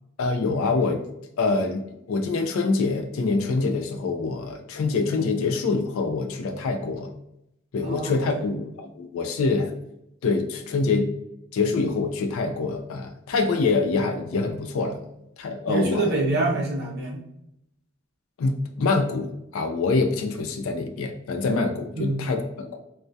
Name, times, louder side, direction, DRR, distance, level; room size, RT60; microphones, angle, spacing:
voice 1, 0.2-1.0 1.4-7.1 7.7-9.7 10.2-11.1 11.5-15.0 15.4-16.0 18.4-22.8, left 3 dB, 70° left, 5 dB, 0.3 m, -25 dB
voice 2, 7.8-8.6 15.7-17.2 22.0-22.2, right 2 dB, 45° right, -1 dB, 0.5 m, -26 dB
2.2 x 2.2 x 2.6 m, 0.81 s
head